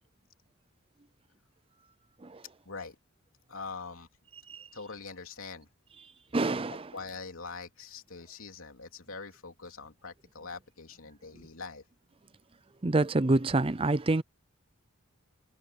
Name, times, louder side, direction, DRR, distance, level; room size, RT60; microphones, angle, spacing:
voice 1, 2.6-3.0 3.5-4.1 4.7-5.7 6.9-11.8, left 4 dB, 70° left, 3.2 m, -43 dB
voice 2, 6.3-6.9 12.8-14.2, right 2 dB, 25° right, 0.5 m, -27 dB
head